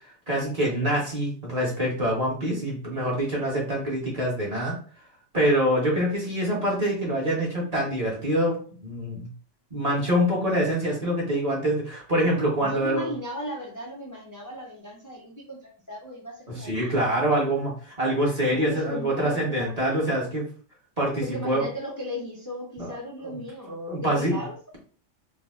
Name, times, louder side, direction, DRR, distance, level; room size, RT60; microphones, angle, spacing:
voice 1, 0.3-4.7 5.3-8.6 8.8-9.3 9.7-13.1 16.5-20.4 21.0-21.7 22.8-22.9 23.2-23.3 23.7-24.4, equal, 35° right, -4 dB, 1.2 m, -25 dB
voice 2, 12.6-17.0 17.3-17.4 18.5-19.7 21.2-24.6, equal, 25° left, -3 dB, 0.4 m, -36 dB
4.5 x 2.1 x 2.4 m, 0.42 s
omnidirectional pair, 1.3 m